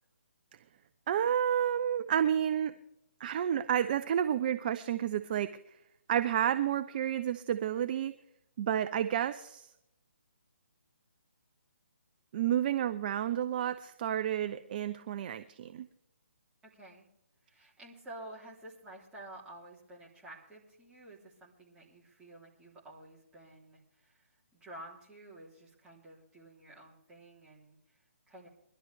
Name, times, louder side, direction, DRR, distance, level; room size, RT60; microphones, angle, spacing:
voice 1, 1.1-2.8 3.2-5.6 6.1-8.2 8.6-9.7 12.3-15.9, right 10 dB, 35° right, 12 dB, 0.6 m, -30 dB
voice 2, 16.6-17.1 17.4-24.3 24.5-28.5, right 1 dB, 10° right, -4 dB, 3.3 m, -51 dB
22.5 x 12.5 x 3.4 m, 0.78 s
figure-of-eight pair, 140°, 8 cm